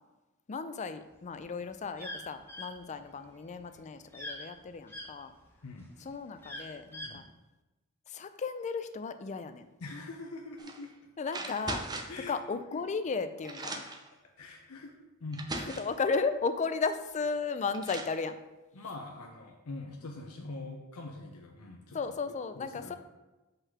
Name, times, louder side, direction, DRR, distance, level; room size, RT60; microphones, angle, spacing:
voice 1, 0.5-5.3 6.0-7.2 8.1-9.7 11.2-11.8 12.3-13.8 15.5-18.4 21.9-23.0, left 4 dB, 35° left, 10 dB, 0.4 m, -34 dB
sound 1, 1.2-5.1 5.6-7.2, left 1 dB, 10° left, 1.1 m, -43 dB
voice 2, 9.8-10.9 12.1-12.3 12.7-12.8 14.4-15.0 15.2-15.5 18.7-22.0 22.6-23.0, left 3 dB, 85° left, 1 dB, 0.7 m, -43 dB
sound 2, 10.6-10.8 11.3-12.2 13.1-13.2 13.4-14.1 14.9-15.0 15.3-16.0 17.3-17.4 17.7-18.2, right 2 dB, 20° right, 0.6 m, -39 dB
5.4 x 3.9 x 5.9 m, 1.1 s
head